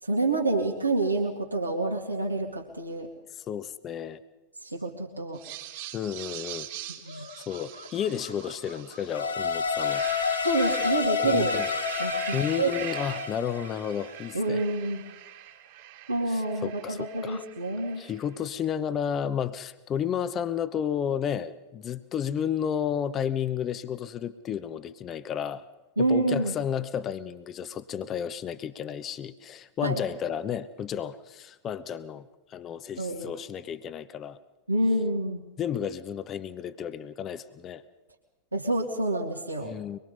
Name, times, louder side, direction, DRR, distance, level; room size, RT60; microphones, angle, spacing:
voice 1, 0.0-3.1 4.6-5.4 7.0-7.3 10.4-11.5 12.0-12.7 14.3-15.0 16.1-18.0 26.0-26.5 29.8-30.0 33.0-33.3 34.7-35.4 38.5-39.7, right 2 dB, 80° right, -2 dB, 2.3 m, -28 dB
voice 2, 3.3-4.2 5.9-6.7 7.1-10.0 11.2-11.7 12.3-14.6 16.3-17.4 18.0-25.7 26.0-34.4 35.6-37.8 39.6-40.0, left 8 dB, 30° left, 13 dB, 1.0 m, -32 dB
sound 1, 5.3-9.2 9.6-18.3, right 13 dB, 50° right, 2.8 m, -42 dB
sound 2, 7.0-11.8, left 2 dB, 85° left, 5.2 m, -49 dB
sound 3, 9.1-14.3, left 6 dB, 70° left, 3.2 m, -29 dB
24.5 x 22.5 x 5.4 m, 1.0 s
figure-of-eight pair, 90°, 0 cm